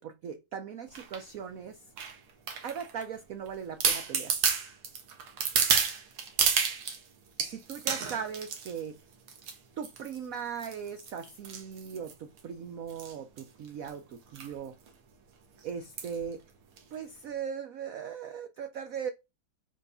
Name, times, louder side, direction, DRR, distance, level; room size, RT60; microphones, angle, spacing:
voice 1, 0.0-1.8 2.6-4.3 7.4-8.9 9.8-14.8 15.6-16.4 16.9-19.1, right 7 dB, 65° right, 0.8 m, -39 dB
sound 1, 0.9-1.2 2.0-3.0 3.5-3.6 3.8-7.0 7.4-8.8 9.3-9.6 9.8-10.2 10.6-12.4 12.9-13.1 13.4-13.5 13.7-13.9 14.4-14.5 14.9-15.0 16.0-16.2 16.8-16.9, right 6 dB, 90° right, 2.3 m, -30 dB
5.1 x 4.7 x 5.5 m
omnidirectional pair, 2.3 m